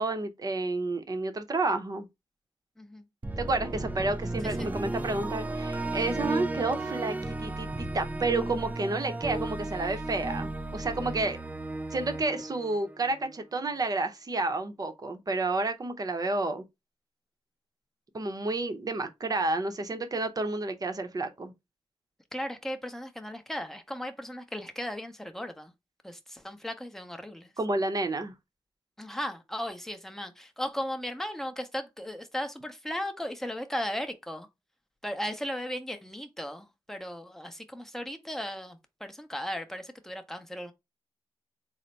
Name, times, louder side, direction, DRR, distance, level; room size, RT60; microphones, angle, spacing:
voice 1, 0.0-2.1 3.4-11.4 11.9-16.6 18.1-21.5 27.6-28.3, right 2 dB, 40° right, 0.8 m, -30 dB
sound 1, 3.2-13.4, right 2 dB, 15° right, 0.4 m, -34 dB
voice 2, 22.3-25.7 26.0-27.5 29.0-34.5 35.0-40.7, equal, 5° left, 0.8 m, -36 dB
3.9 x 2.1 x 4.4 m
cardioid pair, 80°, 10 cm